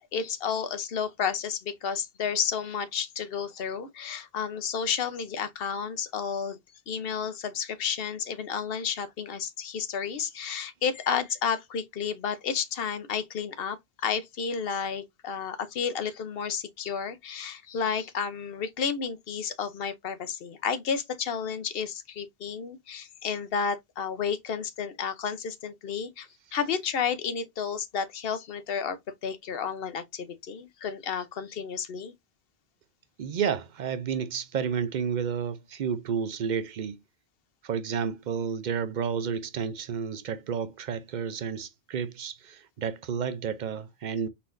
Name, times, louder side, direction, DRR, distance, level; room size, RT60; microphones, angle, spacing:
voice 1, 0.1-6.6 6.9-32.1, left 6 dB, 70° left, 0.9 m, -31 dB
voice 2, 33.2-37.0 37.6-44.3, right 7 dB, 55° right, 0.6 m, -31 dB
4.6 x 4.2 x 2.5 m
omnidirectional pair, 1.0 m